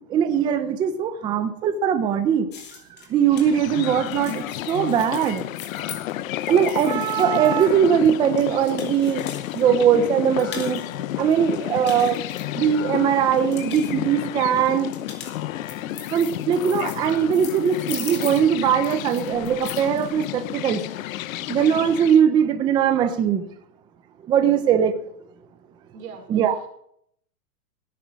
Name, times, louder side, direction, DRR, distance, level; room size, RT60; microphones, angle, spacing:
voice 1, 0.0-2.5 3.1-5.4 6.5-9.3 9.5-10.8 11.2-12.2 12.5-14.9 16.1-20.8 21.5-23.4 24.3-25.0 26.3-26.6, right 8 dB, 10° right, 10 dB, 0.5 m, -20 dB
sound 1, 2.5-9.6 9.9-10.9 11.3-13.0 13.3-13.9 14.7-20.0, left 7 dB, 20° left, 2.9 m, -40 dB
sound 2, 3.2-22.2, left 13 dB, 60° left, 0.9 m, -31 dB
voice 2, 25.9-26.7, right 6 dB, 65° right, 2 dB, 5.2 m, -42 dB
17.5 x 9.3 x 6.2 m, 0.67 s
supercardioid pair, 160°, 47 cm